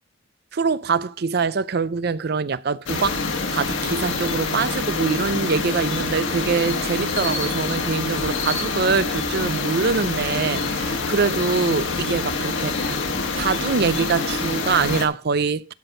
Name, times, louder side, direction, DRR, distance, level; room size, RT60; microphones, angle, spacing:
voice 1, 0.5-3.2 3.5-13.0 13.4-15.7, right 5 dB, 50° right, 0.5 m, -24 dB
sound 1, 2.9-15.1, left 3 dB, 70° left, 1.5 m, -26 dB
12.5 x 4.3 x 6.5 m
head